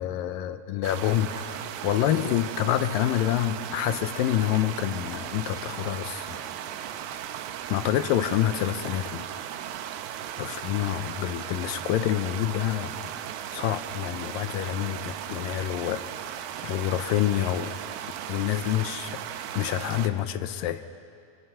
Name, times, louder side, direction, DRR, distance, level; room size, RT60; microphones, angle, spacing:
voice 1, 0.0-6.4 7.7-9.2 10.4-13.1 13.5-17.8 18.3-19.2 19.6-20.8, left 12 dB, 80° left, 10 dB, 2.1 m, -27 dB
sound 1, 0.8-20.1, right 10 dB, 80° right, 2.9 m, -36 dB
29.5 x 25.5 x 5.6 m, 2.4 s
omnidirectional pair, 4.6 m